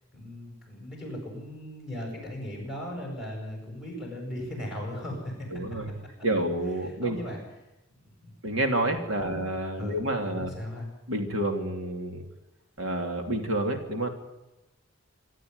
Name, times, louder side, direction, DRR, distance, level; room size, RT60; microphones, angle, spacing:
voice 1, 0.1-5.3 6.8-7.4 8.0-8.3 8.8-9.4 9.8-10.9, left 1 dB, 5° right, 0 dB, 8.0 m, -38 dB
voice 2, 5.5-5.9 6.2-7.2 8.4-10.5 11.1-12.2 12.8-14.1, right 1 dB, 80° right, 5 dB, 3.0 m, -29 dB
25.5 x 13.0 x 9.7 m, 0.97 s
head